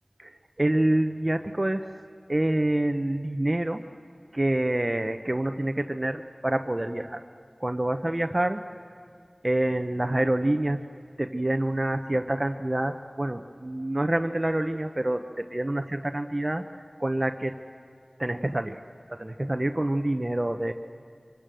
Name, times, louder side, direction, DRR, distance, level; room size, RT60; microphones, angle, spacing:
voice 1, 0.2-1.9 2.3-3.8 4.3-7.2 7.6-8.6 9.4-10.8 11.2-16.7 17.0-17.6 18.2-18.8 19.1-20.7, right 1 dB, 35° right, 6 dB, 0.9 m, -27 dB
24.5 x 24.0 x 7.7 m, 2.1 s
wide cardioid pair, 40°, 0 cm